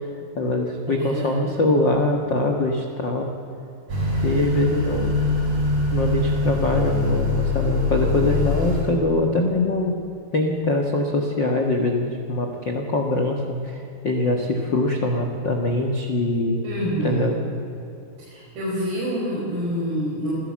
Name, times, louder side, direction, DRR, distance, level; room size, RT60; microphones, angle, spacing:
voice 1, 0.3-3.3 4.2-5.2 5.9-9.9 10.3-16.6 17.0-17.4, left 2 dB, 60° left, 1 dB, 1.1 m, -23 dB
voice 2, 0.9-1.5 16.6-17.4 18.3-20.3, right 1 dB, 90° right, -7 dB, 7.5 m, -27 dB
Motor vehicle (road) / Accelerating revving vroom, 3.9-8.9, left 2 dB, 45° right, 5.9 m, -23 dB
27.0 x 16.0 x 7.4 m, 2.8 s
omnidirectional pair, 4.6 m